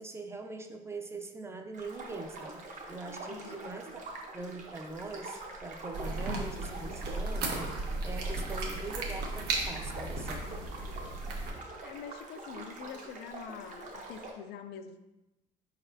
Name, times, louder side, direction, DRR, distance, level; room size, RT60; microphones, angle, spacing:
voice 1, 0.0-4.0 4.3-7.5 8.0-10.5, right 3 dB, 15° right, 4 dB, 0.5 m, -42 dB
sound 1, 1.7-14.3, right 2 dB, 50° right, 1.0 m, -45 dB
voice 2, 3.3-3.6 11.8-15.0, left 7 dB, 75° left, 10 dB, 0.4 m, -45 dB
sound 2, 5.9-11.5, right 2 dB, 75° right, 0.9 m, -35 dB
4.9 x 4.1 x 2.7 m, 1.0 s
cardioid pair, 110°, 17 cm